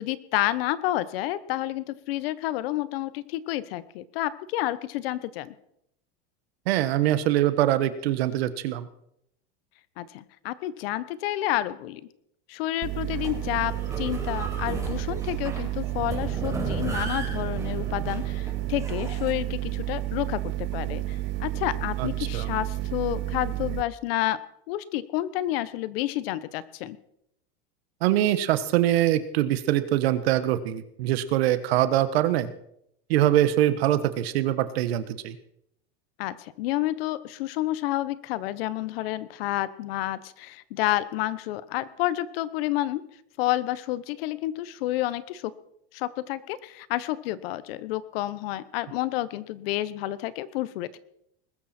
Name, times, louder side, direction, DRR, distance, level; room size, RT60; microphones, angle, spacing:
voice 1, 0.0-5.5 10.0-12.0 12.5-24.4 24.7-27.0 36.2-43.0 43.4-45.5 45.9-51.0, left 15 dB, 70° left, 16 dB, 1.2 m, -30 dB
voice 2, 6.7-8.9 22.0-22.1 22.3-22.5 28.0-32.5 33.1-35.3, right 13 dB, 80° right, 12 dB, 1.5 m, -23 dB
sound 1, 12.8-23.8, right 15 dB, 40° right, 0.7 m, -31 dB
sound 2, 13.1-19.3, right 3 dB, 10° right, 4.5 m, -36 dB
20.5 x 13.5 x 4.4 m, 0.75 s
supercardioid pair, 140°, 30 cm